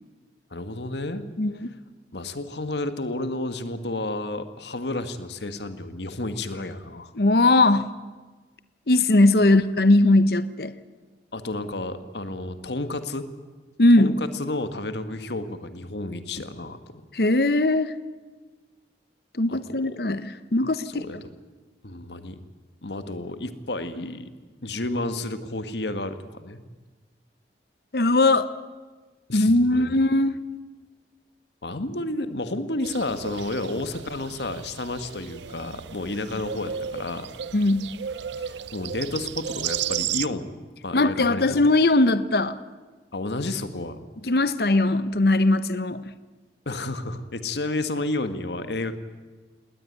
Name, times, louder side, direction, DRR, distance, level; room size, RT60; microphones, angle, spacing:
voice 1, 0.5-1.2 2.1-7.1 11.3-13.3 14.0-17.0 19.5-20.0 20.8-21.2 21.8-22.4 22.8-24.3 24.6-26.6 29.3-30.0 31.6-37.3 38.4-40.6 40.8-41.6 43.1-44.0 46.6-49.0, left 2 dB, 80° left, 10 dB, 1.6 m, -31 dB
voice 2, 1.4-1.7 7.2-7.9 8.9-10.7 13.8-14.2 17.1-17.9 19.3-21.0 27.9-28.5 29.3-30.4 37.5-37.9 40.9-42.6 44.2-46.0, left 2 dB, 60° left, 14 dB, 0.9 m, -20 dB
sound 1, 32.8-40.3, right 9 dB, 90° right, 0.6 m, -34 dB
19.5 x 19.0 x 9.3 m, 1.3 s
head